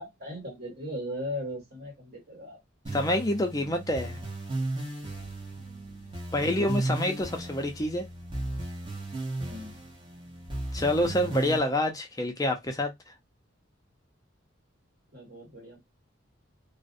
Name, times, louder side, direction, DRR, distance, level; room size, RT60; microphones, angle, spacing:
voice 1, 0.0-2.6 4.0-4.1 5.5-7.1 9.4-9.8 11.2-11.6 15.1-15.8, left 1 dB, 50° right, 1.4 m, -40 dB
sound 1, 2.8-11.6, right 2 dB, 25° right, 0.7 m, -35 dB
voice 2, 2.9-4.2 6.3-8.1 10.7-12.9, left 1 dB, 15° left, 0.4 m, -27 dB
2.4 x 2.0 x 2.5 m
head